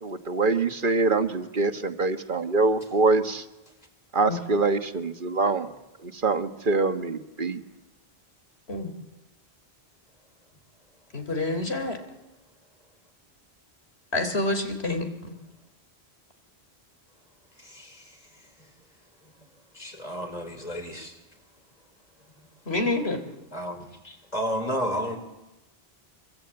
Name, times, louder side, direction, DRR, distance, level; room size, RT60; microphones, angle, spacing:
voice 1, 0.0-3.4 4.1-5.7 6.0-7.6, right 3 dB, 55° right, 1.6 m, -24 dB
voice 2, 11.1-12.0 14.1-15.0 22.7-23.2, left 2 dB, 75° left, 3.9 m, -27 dB
voice 3, 17.6-18.2 19.7-21.1 23.5-25.2, equal, 40° left, 4.3 m, -32 dB
25.0 x 24.0 x 8.8 m
omnidirectional pair, 1.1 m